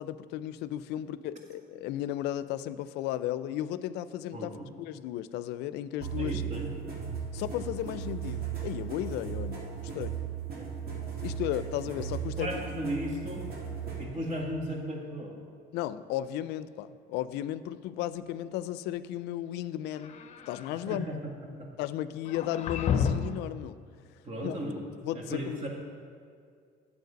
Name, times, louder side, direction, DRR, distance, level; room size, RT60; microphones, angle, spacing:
voice 1, 0.0-4.5 4.8-6.4 7.3-9.7 9.9-10.1 11.2-12.5 15.7-20.2 20.5-21.1 21.8-23.8 24.4-24.6 25.0-25.7, left 12 dB, 90° left, 14 dB, 0.4 m, -34 dB
voice 2, 4.3-4.7 6.2-6.7 10.5-10.7 12.3-13.5 14.0-15.4 20.9-21.2 21.6-21.7 24.2-24.8 25.1-25.7, equal, 45° right, 0 dB, 1.8 m, -35 dB
sound 1, 6.0-14.1, right 8 dB, 65° right, 2.1 m, -36 dB
sound 2, 19.9-20.8 22.3-23.5, left 6 dB, 40° left, 0.6 m, -31 dB
9.3 x 7.1 x 5.1 m, 2.2 s
cardioid pair, 110°, 17 cm